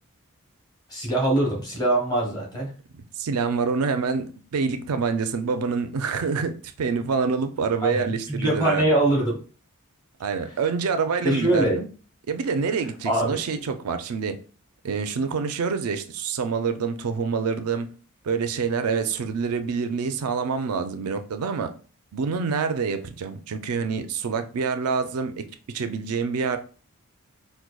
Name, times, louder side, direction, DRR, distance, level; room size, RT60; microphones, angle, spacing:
voice 1, 0.9-2.7 7.8-9.4 11.2-11.8 13.0-13.6, right 1 dB, 20° left, 0.9 m, -23 dB
voice 2, 2.9-8.9 10.2-11.9 12.3-14.4 14.8-17.9 18.2-21.7 22.1-25.4 25.7-26.6, right 5 dB, 80° right, 0.4 m, -26 dB
4.7 x 2.2 x 2.2 m
head